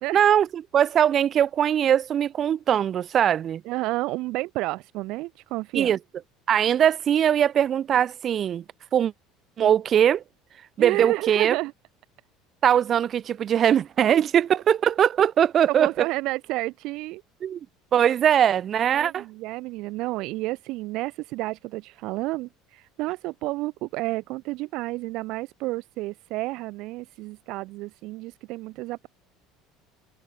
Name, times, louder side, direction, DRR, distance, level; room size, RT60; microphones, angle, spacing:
voice 1, 0.1-3.6 5.7-6.0 6.5-8.6 8.9-9.1 9.6-10.2 10.8-11.6 12.6-15.9 17.4-17.6 17.9-19.2, right 9 dB, 45° right, 3.4 m, -21 dB
voice 2, 3.7-5.9 10.8-11.7 14.1-14.2 15.7-17.2 18.9-29.1, right 20 dB, 65° right, 2.1 m, -31 dB
open air
hypercardioid pair, 80°, 0 cm